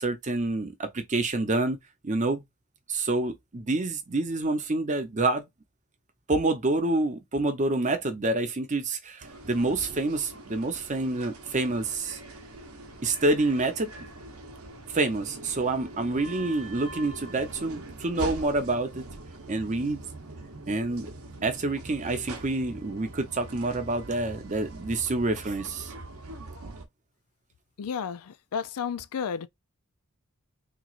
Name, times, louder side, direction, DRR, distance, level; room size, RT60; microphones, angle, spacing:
voice 1, 0.0-1.8 2.0-2.4 2.9-5.4 6.3-12.2 13.0-13.9 14.9-19.0 19.5-20.0 20.7-21.1 21.4-25.9, right 2 dB, 35° right, 0.7 m, -27 dB
sound 1, 9.2-26.8, right 2 dB, 70° right, 0.9 m, -43 dB
voice 2, 27.8-29.5, left 7 dB, 80° left, 0.4 m, -32 dB
3.6 x 3.0 x 2.4 m
head